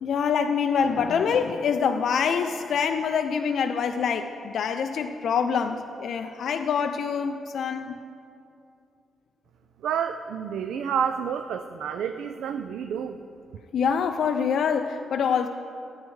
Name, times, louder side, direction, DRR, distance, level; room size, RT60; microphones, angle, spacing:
voice 1, 0.0-8.0 13.7-15.5, left 6 dB, 65° left, 6 dB, 0.3 m, -25 dB
voice 2, 9.8-13.2, right 7 dB, 85° right, 8 dB, 0.3 m, -29 dB
13.5 x 8.8 x 3.1 m, 2.6 s
cardioid pair, 145°, 0 cm